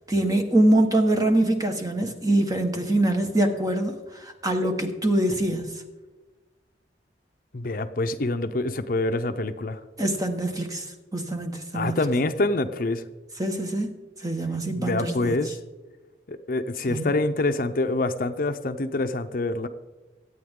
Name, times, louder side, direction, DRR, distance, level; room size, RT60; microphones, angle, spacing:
voice 1, 0.1-5.7 10.0-10.9 11.1-12.0 13.4-13.9 14.2-15.3 16.9-17.1, right 1 dB, 20° right, 4 dB, 1.4 m, -24 dB
voice 2, 7.5-9.8 11.7-13.0 14.7-15.6 16.3-19.7, left 2 dB, 50° left, 9 dB, 0.6 m, -26 dB
24.0 x 8.6 x 3.7 m, 1.2 s
head